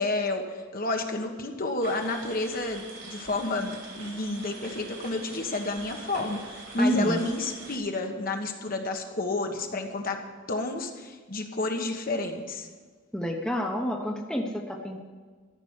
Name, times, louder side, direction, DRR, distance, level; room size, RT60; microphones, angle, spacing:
voice 1, 0.0-10.2 10.5-12.7, left 2 dB, 45° left, 4 dB, 1.3 m, -30 dB
sound 1, 1.8-7.8, right 3 dB, 75° right, 3.6 m, -44 dB
voice 2, 6.8-7.2 13.1-15.0, equal, 5° left, 1 dB, 1.1 m, -28 dB
14.0 x 6.0 x 9.5 m, 1.5 s
head